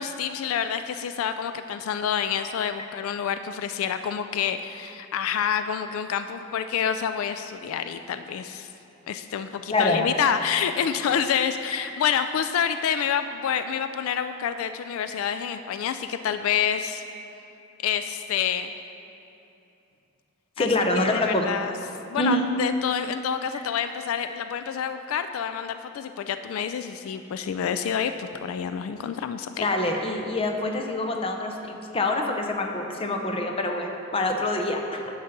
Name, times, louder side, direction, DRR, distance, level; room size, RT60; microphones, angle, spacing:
voice 1, 0.0-8.7 9.1-17.0 17.8-18.7 20.6-20.7 20.9-21.7 22.1-29.7, left 8 dB, 80° left, 9 dB, 0.3 m, -28 dB
voice 2, 9.7-10.1 20.6-21.5 22.2-22.5 24.3-24.4 29.5-35.0, left 2 dB, 25° left, 3 dB, 0.6 m, -26 dB
9.5 x 4.0 x 6.6 m, 2.8 s
head